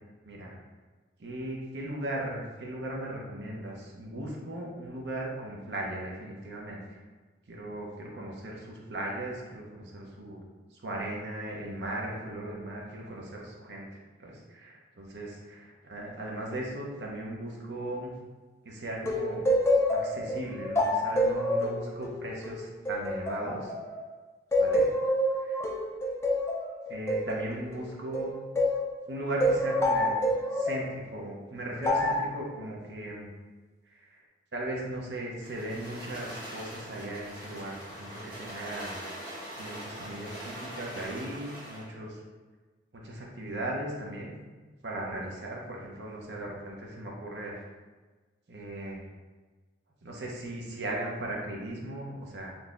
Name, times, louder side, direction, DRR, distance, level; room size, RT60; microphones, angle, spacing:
voice 1, 0.2-0.6 1.2-7.0 7.5-10.4 10.7-18.1 18.6-19.4 19.9-23.7 24.6-24.8 25.4-25.6 26.9-28.3 29.1-30.2 30.5-33.3 33.9-34.2 34.5-39.0 39.6-42.2 42.9-44.3 44.8-47.6 48.5-49.0 50.0-52.6, right 1 dB, 80° right, -2 dB, 0.7 m, -37 dB
sound 1, 19.0-24.1 24.5-28.9 29.4-30.8 31.8-32.3, left 1 dB, 15° left, 0.3 m, -27 dB
sound 2, 35.4-41.9, right 1 dB, 10° right, 1.4 m, -42 dB
3.8 x 2.8 x 2.5 m, 1.3 s
head